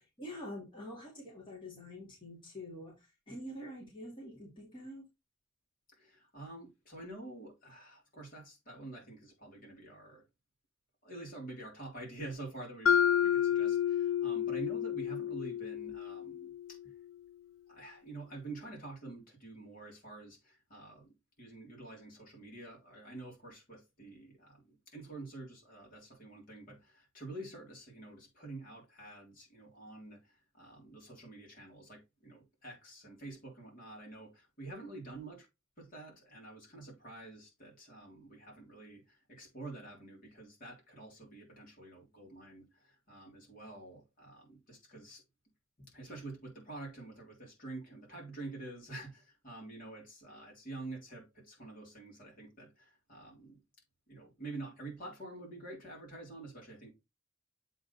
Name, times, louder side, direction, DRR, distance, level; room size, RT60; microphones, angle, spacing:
voice 1, 0.0-5.0, left 1 dB, 25° left, 2.3 m, -46 dB
voice 2, 5.9-10.2 11.0-16.8 17.7-35.5 35.8-45.2 45.9-53.6 54.1-56.9, right 2 dB, 45° left, 3.3 m, -48 dB
Mallet percussion, 12.9-16.9, left 9 dB, 85° left, 0.5 m, -30 dB
7.7 x 3.8 x 4.1 m
head